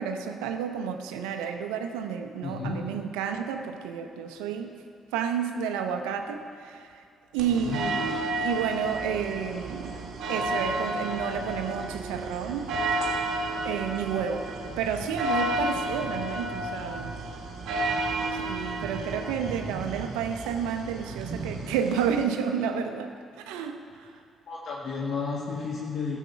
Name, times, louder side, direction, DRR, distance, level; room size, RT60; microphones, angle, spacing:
voice 1, 0.0-4.7 5.1-7.0 7.3-10.0 10.3-12.7 13.6-14.5 14.8-17.1 18.3-23.1 23.4-24.1, right 7 dB, 85° right, 6 dB, 0.7 m, -31 dB
voice 2, 2.4-2.8 7.5-7.8 24.5-26.2, left 5 dB, 65° left, -3 dB, 1.6 m, -32 dB
sound 1, 7.4-22.2, right 1 dB, 70° right, 1.4 m, -32 dB
14.5 x 7.4 x 5.7 m, 2.4 s
hypercardioid pair, 50°, 0 cm